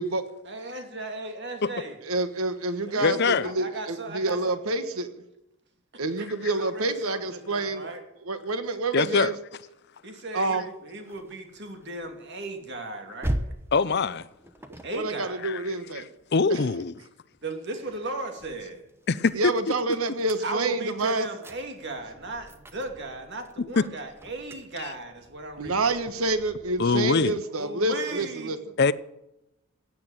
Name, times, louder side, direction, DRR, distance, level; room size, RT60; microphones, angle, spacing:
voice 1, 0.5-2.0 2.9-4.6 5.9-6.3 6.5-8.0 10.0-13.5 14.8-15.4 17.4-18.8 20.4-25.8 26.1-26.3 27.5-28.5, right 2 dB, 50° right, 2.7 m, -36 dB
voice 2, 2.0-5.2 6.0-7.9 8.2-9.3 10.3-10.6 14.7-16.1 16.5-16.6 19.3-21.3 25.6-28.7, right 2 dB, 80° right, 1.3 m, -28 dB
voice 3, 3.0-3.5 8.9-9.3 13.7-14.3 15.4-15.6 16.3-16.9 19.1-19.3 23.8-23.9 24.8-24.9 26.8-27.4 28.8-28.9, left 4 dB, 50° left, 0.6 m, -23 dB
sound 1, 10.4-16.9 17.3-27.1, right 1 dB, 10° right, 1.0 m, -41 dB
16.0 x 8.8 x 9.1 m
head